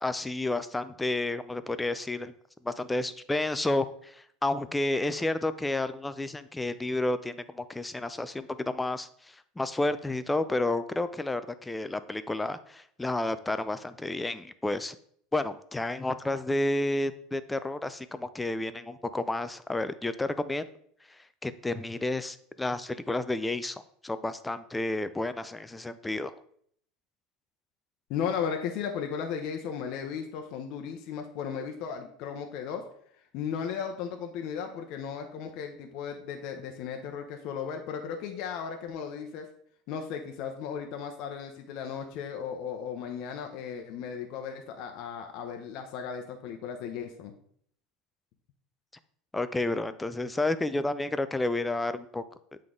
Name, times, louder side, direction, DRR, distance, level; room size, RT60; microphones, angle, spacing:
voice 1, 0.0-2.3 2.6-9.1 9.6-15.0 15.3-20.7 21.4-23.8 24.0-26.3 49.3-52.2, left 2 dB, 10° left, 13 dB, 0.3 m, -31 dB
voice 2, 28.1-32.8 33.3-39.5 39.9-47.3, left 7 dB, 55° left, 4 dB, 0.7 m, -35 dB
7.8 x 3.8 x 3.6 m, 0.64 s
supercardioid pair, 145°, 0 cm